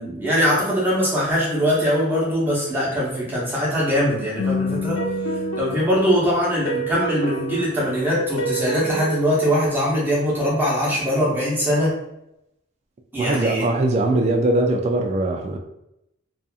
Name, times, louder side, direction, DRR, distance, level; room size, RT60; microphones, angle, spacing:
voice 1, 0.0-5.0 5.6-11.9 13.1-13.7, equal, 10° right, -7 dB, 0.9 m, -22 dB
sound 1, 4.4-9.7, right 1 dB, 75° left, 0.4 m, -28 dB
voice 2, 13.2-15.6, right 2 dB, 35° right, 3 dB, 0.3 m, -21 dB
2.6 x 2.4 x 2.3 m, 0.83 s
head